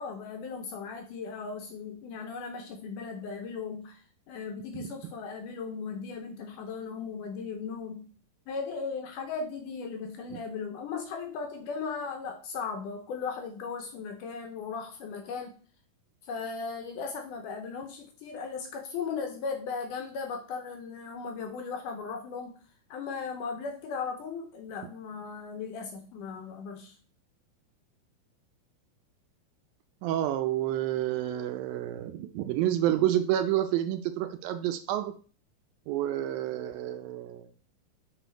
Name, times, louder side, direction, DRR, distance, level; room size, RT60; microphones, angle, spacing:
voice 1, 0.0-4.0 4.3-8.1 8.5-15.5 16.3-22.5 22.9-26.9, left 5 dB, 75° left, 4 dB, 2.1 m, -37 dB
voice 2, 30.0-35.1 35.9-37.5, right 12 dB, 80° right, 8 dB, 2.3 m, -29 dB
7.2 x 4.4 x 4.5 m, 0.40 s
omnidirectional pair, 4.3 m